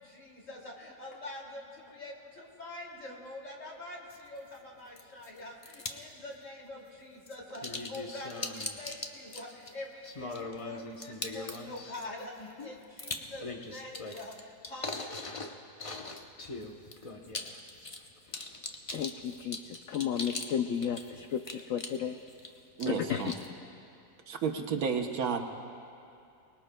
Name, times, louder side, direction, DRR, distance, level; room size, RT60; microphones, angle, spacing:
voice 1, 0.0-15.4, left 2 dB, 50° left, -3 dB, 2.9 m, -45 dB
sound 1, 4.1-4.2 5.0-5.3 5.6-6.0 7.3-20.5 20.8-22.5 22.8-23.5, left 3 dB, 35° left, 0.5 m, -40 dB
voice 2, 18.9-22.2 22.9-23.3, left 8 dB, 65° left, 6 dB, 0.8 m, -33 dB
voice 3, 22.8-23.3 24.3-25.4, right 6 dB, 65° right, 3 dB, 1.3 m, -31 dB
24.0 x 20.5 x 2.2 m, 2.6 s
omnidirectional pair, 1.7 m